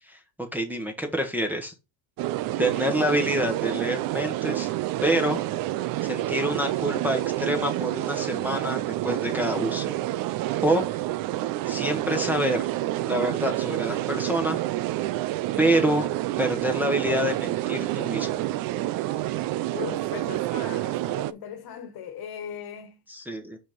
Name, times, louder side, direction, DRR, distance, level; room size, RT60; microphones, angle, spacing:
voice 1, 0.5-1.7 2.6-4.7 5.0-5.5 6.0-9.9 10.6-11.0 11.6-12.7 13.0-14.6 15.6-16.1 16.4-18.4 23.1-23.6, right 1 dB, 5° right, 1.2 m, -27 dB
sound 1, 2.2-21.3, right 15 dB, 50° right, 0.5 m, -28 dB
voice 2, 19.7-23.0, left 8 dB, 50° left, 1.6 m, -38 dB
5.8 x 4.2 x 5.2 m
supercardioid pair, 115°, 47 cm